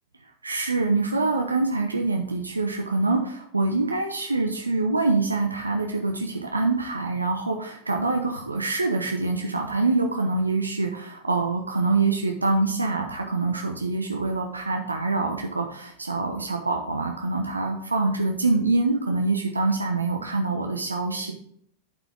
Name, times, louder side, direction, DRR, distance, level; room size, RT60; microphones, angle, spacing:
voice 1, 0.4-21.3, right 3 dB, 80° right, 2 dB, 0.9 m, -25 dB
10.5 x 6.1 x 3.5 m, 0.67 s
figure-of-eight pair, 90°, 0 cm